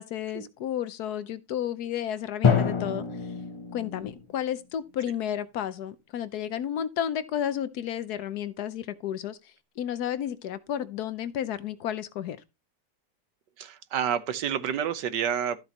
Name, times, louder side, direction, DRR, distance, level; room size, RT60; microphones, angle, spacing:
voice 1, 0.0-3.0 3.7-12.4, left 10 dB, 70° left, 1.2 m, -32 dB
Drum, 2.4-4.3, left 6 dB, 45° left, 0.4 m, -26 dB
voice 2, 13.6-15.6, right 8 dB, 80° right, 1.5 m, -29 dB
12.5 x 7.8 x 2.9 m
omnidirectional pair, 1.9 m